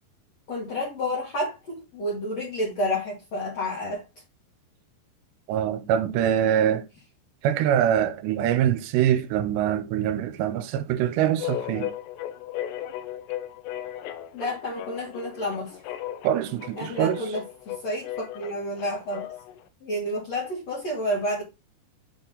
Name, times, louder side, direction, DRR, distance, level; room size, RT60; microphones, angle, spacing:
voice 1, 0.5-4.0 14.3-15.8 16.8-19.2 19.8-21.4, left 1 dB, 45° left, 2.9 m, -30 dB
voice 2, 5.5-6.9 7.4-11.9 16.2-17.3, right 10 dB, 80° right, 2.8 m, -24 dB
sound 1, 11.4-19.6, left 12 dB, 80° left, 2.8 m, -36 dB
7.1 x 4.6 x 3.9 m
omnidirectional pair, 5.1 m